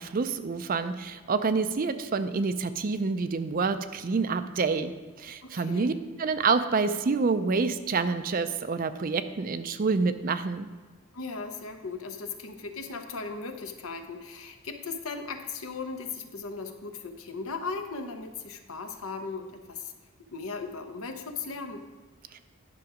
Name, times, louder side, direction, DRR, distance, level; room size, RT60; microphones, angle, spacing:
voice 1, 0.0-5.9 6.2-10.7, right 4 dB, 40° right, 11 dB, 0.4 m, -27 dB
voice 2, 5.4-5.9 11.1-19.9 20.3-21.8, left 4 dB, 75° left, 6 dB, 0.9 m, -37 dB
10.5 x 6.2 x 4.9 m, 1.3 s
head